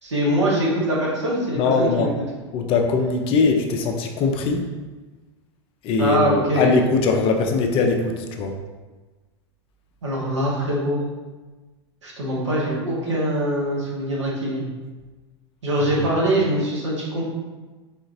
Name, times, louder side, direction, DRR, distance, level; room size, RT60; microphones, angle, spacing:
voice 1, 0.0-2.1 6.0-6.7 10.0-11.0 12.0-14.7 15.6-17.2, right 1 dB, 80° right, -5 dB, 1.3 m, -23 dB
voice 2, 1.6-2.1 2.5-4.6 5.8-8.5, left 4 dB, 40° left, 4 dB, 0.5 m, -21 dB
4.3 x 3.8 x 2.6 m, 1.3 s
figure-of-eight pair, 90°, 15 cm